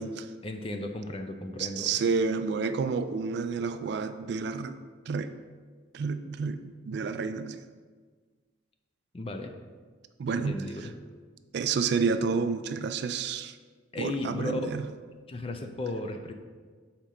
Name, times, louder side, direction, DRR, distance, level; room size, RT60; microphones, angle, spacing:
voice 1, 0.4-2.0 9.1-9.5 10.3-10.9 13.9-14.7 15.3-16.3, left 2 dB, 30° left, 6 dB, 0.4 m, -35 dB
voice 2, 1.6-4.8 5.1-5.3 5.9-7.6 10.2-10.9 11.5-13.6 14.0-14.8, right 5 dB, 60° right, 10 dB, 0.3 m, -30 dB
6.8 x 4.4 x 3.7 m, 1.5 s
head